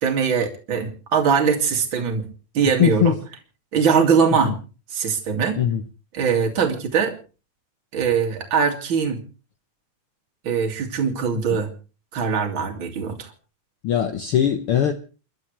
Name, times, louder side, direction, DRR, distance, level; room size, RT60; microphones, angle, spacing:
voice 1, 0.0-2.2 2.5-3.1 3.7-4.5 4.9-5.6 6.1-7.1 7.9-9.2 10.4-11.7 12.1-13.3, right 6 dB, 40° right, 2.9 m, -21 dB
voice 2, 2.8-3.2 4.4-4.5 5.6-5.8 11.5-11.6 13.8-14.9, left 9 dB, 65° left, 1.4 m, -20 dB
29.5 x 12.0 x 3.3 m
omnidirectional pair, 3.5 m